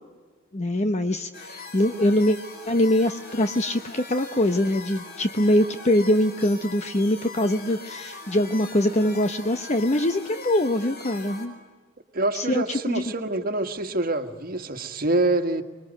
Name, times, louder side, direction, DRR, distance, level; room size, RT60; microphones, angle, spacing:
voice 1, 0.5-2.4 2.7-11.5 12.3-13.0, left 1 dB, 35° left, 8 dB, 0.9 m, -23 dB
sound 1, 1.3-11.4, left 3 dB, 50° left, 4.7 m, -41 dB
voice 2, 12.1-15.6, right 2 dB, 45° right, 6 dB, 1.7 m, -26 dB
25.5 x 22.0 x 9.3 m, 1.4 s
head